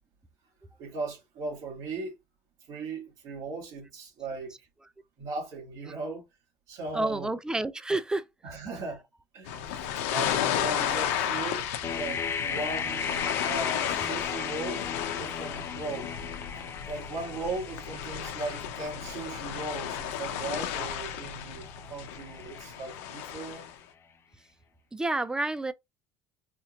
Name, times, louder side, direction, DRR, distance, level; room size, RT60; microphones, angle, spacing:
voice 1, 0.8-2.2 2.7-4.5 5.2-6.2 6.7-7.3 8.4-9.0 9.3-16.1 16.9-21.6 21.9-23.7, right 3 dB, 55° right, 2.4 m, -38 dB
voice 2, 6.9-8.3 24.9-25.7, right 2 dB, 10° right, 0.5 m, -29 dB
sound 1, 9.5-23.7, left 9 dB, 85° left, 0.7 m, -33 dB
sound 2, 11.8-23.6, left 6 dB, 35° left, 0.6 m, -37 dB
4.4 x 2.8 x 2.4 m
supercardioid pair, 105°, 7 cm